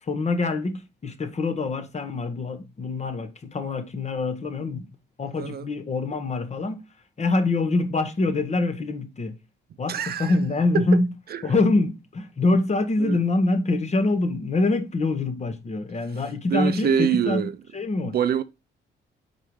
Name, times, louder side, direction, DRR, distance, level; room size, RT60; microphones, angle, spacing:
voice 1, 0.0-4.9 5.2-6.8 7.2-9.4 9.8-11.1 11.4-18.2, left 2 dB, 35° left, 1.1 m, -25 dB
voice 2, 9.9-10.4 10.7-10.8 13.0-13.2 16.5-17.6 18.1-18.4, right 8 dB, 50° right, 0.5 m, -24 dB
4.9 x 4.4 x 4.7 m
cardioid pair, 90°, 20 cm